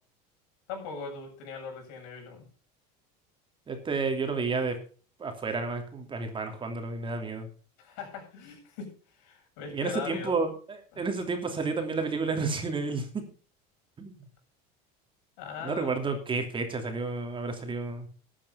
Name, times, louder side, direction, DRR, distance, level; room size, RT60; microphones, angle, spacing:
voice 1, 0.7-2.5 7.8-10.5 10.9-11.0 15.4-16.0, left 5 dB, 75° left, 3 dB, 7.6 m, -40 dB
voice 2, 3.7-4.7 5.2-7.5 9.7-10.5 11.0-13.2 14.0-14.1 15.6-18.1, right 4 dB, 25° right, 5 dB, 2.9 m, -31 dB
12.5 x 8.6 x 5.8 m, 0.40 s
supercardioid pair, 120°, 21 cm